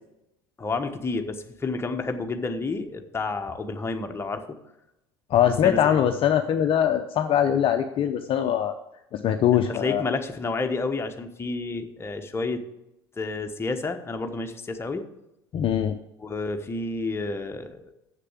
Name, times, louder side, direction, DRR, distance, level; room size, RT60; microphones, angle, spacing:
voice 1, 0.6-4.4 5.6-6.0 9.5-12.6 13.2-15.1 16.2-17.9, left 3 dB, 20° left, 5 dB, 1.2 m, -30 dB
voice 2, 5.3-8.8 9.1-10.0 15.5-16.0, left 9 dB, 45° left, 7 dB, 0.6 m, -22 dB
7.5 x 6.6 x 7.5 m, 0.89 s
hypercardioid pair, 65°, 13 cm